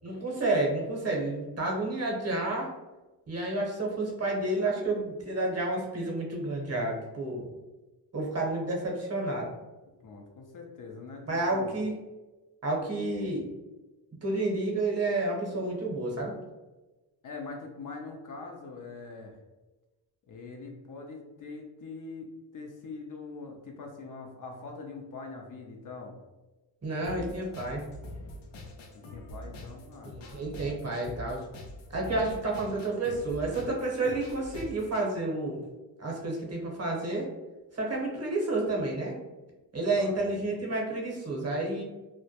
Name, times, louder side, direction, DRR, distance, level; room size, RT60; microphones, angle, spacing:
voice 1, 0.0-2.7 3.3-7.5 8.1-9.5 11.3-11.9 12.6-13.5 14.2-16.4 26.8-27.9 30.0-31.4 31.9-35.6 36.0-37.3 37.7-39.1 39.7-41.8, right 2 dB, 35° right, -1 dB, 0.8 m, -30 dB
voice 2, 10.0-11.7 17.2-19.4 20.3-26.2 28.9-30.8 40.0-40.3, left 3 dB, 45° left, 1 dB, 0.5 m, -43 dB
sound 1, 27.0-35.0, left 1 dB, 85° left, 0.6 m, -44 dB
2.2 x 2.1 x 2.7 m, 1.1 s
supercardioid pair, 60°, 45 cm